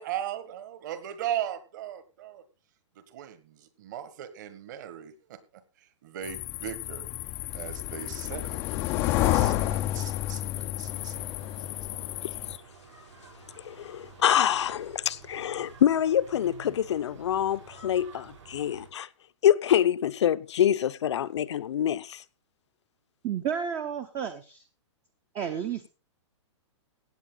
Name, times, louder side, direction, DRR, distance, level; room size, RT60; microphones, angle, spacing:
voice 1, 0.0-2.4 3.1-3.4 3.8-5.4 6.0-7.1 7.5-8.6 9.2-11.2 11.9-12.0, right 11 dB, 40° right, 1.7 m, -37 dB
sound 1, 6.2-12.6, left 14 dB, 15° left, 0.5 m, -30 dB
sound 2, 10.8-18.9, right 5 dB, 80° right, 7.3 m, -50 dB
voice 2, 13.6-19.1 19.4-22.2, left 10 dB, 65° left, 0.8 m, -26 dB
voice 3, 23.2-24.6 25.3-25.9, right 8 dB, 15° right, 0.8 m, -31 dB
16.5 x 8.3 x 4.0 m
hypercardioid pair, 175°, 16 cm